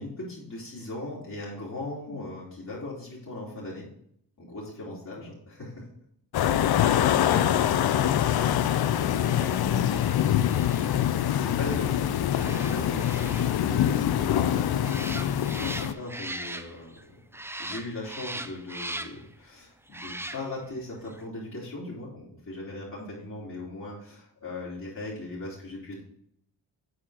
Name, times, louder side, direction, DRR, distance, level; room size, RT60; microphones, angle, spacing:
voice 1, 0.0-3.9 4.4-5.9 11.2-17.1 17.6-26.0, left 2 dB, 45° left, -8 dB, 3.1 m, -39 dB
sound 1, 6.3-15.9, left 10 dB, 60° left, 0.5 m, -24 dB
voice 2, 6.9-10.7 23.0-23.3, left 2 dB, 85° left, 0 dB, 2.0 m, -40 dB
sound 2, 7.3-17.0 17.3-19.3 19.9-20.7 21.1-21.2, right 1 dB, 5° right, 0.6 m, -41 dB
7.8 x 4.6 x 4.8 m, 0.69 s
cardioid pair, 55°, 43 cm